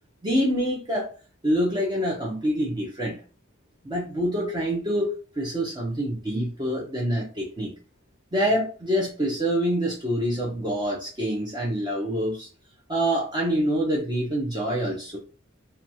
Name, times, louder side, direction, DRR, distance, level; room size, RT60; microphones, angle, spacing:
voice 1, 0.2-1.1 1.4-3.2 3.8-7.7 8.3-12.5 12.9-15.2, equal, 20° right, -4 dB, 0.6 m, -26 dB
2.8 x 2.2 x 2.7 m, 0.37 s
head